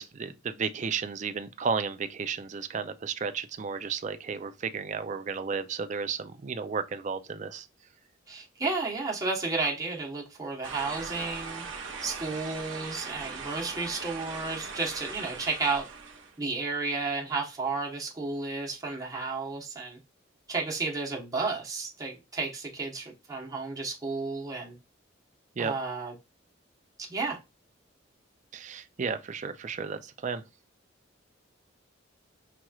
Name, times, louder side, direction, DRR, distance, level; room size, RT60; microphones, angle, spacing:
voice 1, 0.0-7.7 25.6-25.7 28.5-30.4, right 5 dB, 40° right, 0.4 m, -33 dB
voice 2, 8.3-11.6 12.0-15.9 16.4-20.0 20.5-24.7 25.6-26.1 27.0-27.4, right 3 dB, 20° right, 1.0 m, -32 dB
sound 1, 10.6-16.4, right 5 dB, 70° right, 0.8 m, -40 dB
5.7 x 3.0 x 2.3 m
head